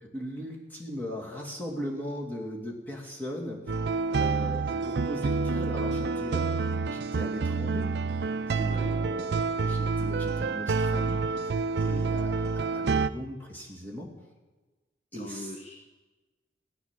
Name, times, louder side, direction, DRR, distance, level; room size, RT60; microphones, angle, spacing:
voice 1, 0.0-3.6 4.1-7.9 8.5-11.2 11.8-14.1 15.1-15.6, equal, 10° left, -3 dB, 2.6 m, -39 dB
sound 1, 3.7-13.1, right 4 dB, 75° right, 0.5 m, -28 dB
voice 2, 15.2-15.7, left 1 dB, 35° left, 3 dB, 1.1 m, -41 dB
15.5 x 10.0 x 7.6 m, 1.2 s
head